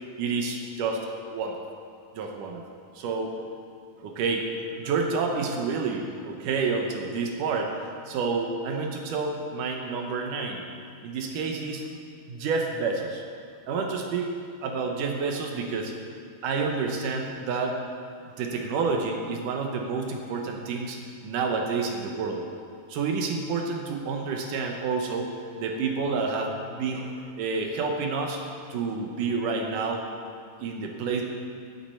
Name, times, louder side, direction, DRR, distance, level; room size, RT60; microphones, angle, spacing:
voice 1, 0.2-1.6 2.1-2.6 3.0-3.4 4.0-4.5 4.8-7.7 8.1-10.6 11.0-11.9 12.3-13.2 13.7-14.3 14.6-15.9 16.4-17.8 18.3-22.4 22.9-28.4 28.7-30.0 30.6-31.2, right 4 dB, 70° right, 2 dB, 2.1 m, -29 dB
12.5 x 10.0 x 4.4 m, 2.3 s
omnidirectional pair, 4.5 m